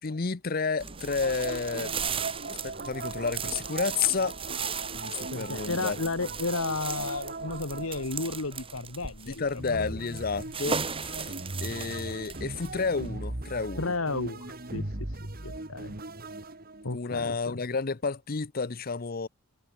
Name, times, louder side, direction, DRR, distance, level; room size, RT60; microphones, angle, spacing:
voice 1, 0.0-1.9 2.5-4.4 4.9-6.0 9.3-11.3 11.6-13.9 16.9-19.3, left 5 dB, 40° left, 0.7 m, -31 dB
sound 1, 0.8-13.1, right 6 dB, 25° right, 2.1 m, -37 dB
sound 2, 0.9-9.1 9.6-17.0, right 2 dB, 40° right, 2.1 m, -39 dB
voice 2, 5.3-9.5 9.8-10.0 13.8-16.0 16.8-17.6, left 3 dB, 70° left, 1.8 m, -33 dB
head